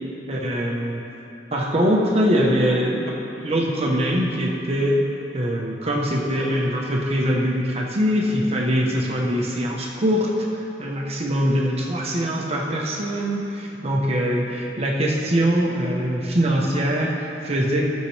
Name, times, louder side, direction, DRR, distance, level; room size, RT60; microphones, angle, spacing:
voice 1, 0.3-1.0 1.5-5.0 5.3-17.9, equal, 35° right, -2 dB, 1.0 m, -23 dB
17.0 x 6.6 x 3.3 m, 3.0 s
head